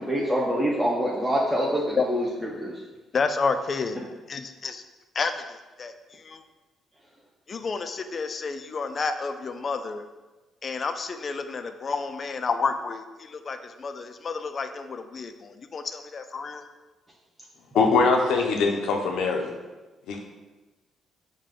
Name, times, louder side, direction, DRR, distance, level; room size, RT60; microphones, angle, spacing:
voice 1, 0.0-2.8 4.0-4.1, equal, 5° right, -5 dB, 0.6 m, -26 dB
voice 2, 3.1-4.0 4.3-4.8 5.1-6.4 7.5-10.0 10.6-16.6, left 4 dB, 40° left, 8 dB, 0.3 m, -30 dB
voice 3, 17.7-19.5 20.1-20.2, left 4 dB, 85° left, 2 dB, 0.6 m, -22 dB
4.9 x 2.2 x 3.7 m, 1.2 s
cardioid pair, 90°, 0 cm